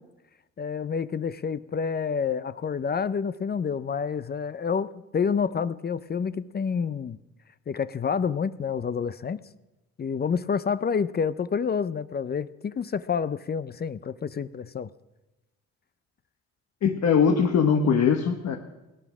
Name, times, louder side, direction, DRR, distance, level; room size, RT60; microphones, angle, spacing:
voice 1, 0.6-7.2 7.7-9.4 10.0-14.9, left 6 dB, 35° left, 0.5 m, -28 dB
voice 2, 16.8-18.6, left 6 dB, 60° left, 1.3 m, -21 dB
17.5 x 11.0 x 6.1 m
cardioid pair, 90°, 30 cm